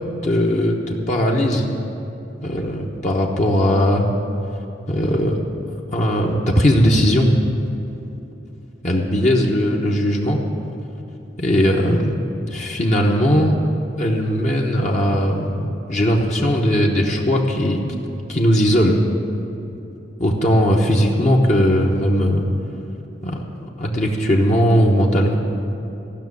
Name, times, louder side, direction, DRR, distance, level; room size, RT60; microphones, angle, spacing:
voice 1, 0.2-1.7 2.4-4.1 4.9-5.4 5.9-7.3 8.8-10.4 11.4-12.2 12.5-13.5 14.0-17.8 18.3-19.0 20.2-22.5 23.2-23.4 23.8-25.4, equal, 40° left, -1 dB, 1.1 m, -18 dB
15.5 x 6.3 x 9.5 m, 2.9 s
head